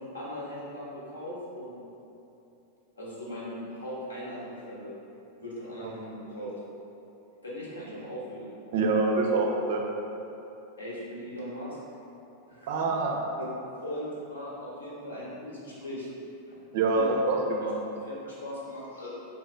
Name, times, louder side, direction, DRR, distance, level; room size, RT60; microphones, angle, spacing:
voice 1, 0.0-1.8 3.0-4.9 5.3-6.5 7.4-8.6 10.8-11.8 12.5-12.7 13.4-13.5 13.8-16.1 16.5-17.1 17.9-19.1, equal, 75° left, -6 dB, 0.8 m, -39 dB
voice 2, 8.7-9.8 12.7-13.1 16.7-17.7, right 3 dB, 50° right, 0 dB, 0.4 m, -25 dB
4.1 x 2.0 x 3.1 m, 2.8 s
figure-of-eight pair, 90°, 0 cm